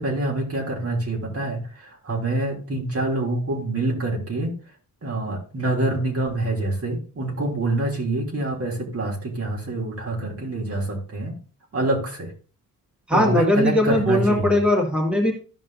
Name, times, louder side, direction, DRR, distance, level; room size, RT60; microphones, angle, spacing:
voice 1, 0.0-1.6 2.0-4.5 5.0-11.3 11.7-12.3 13.1-14.6, right 2 dB, 40° right, -1 dB, 3.0 m, -26 dB
voice 2, 13.1-15.3, left 1 dB, 5° right, -2 dB, 2.3 m, -19 dB
14.0 x 5.3 x 2.7 m, 0.36 s
cardioid pair, 115°, 35 cm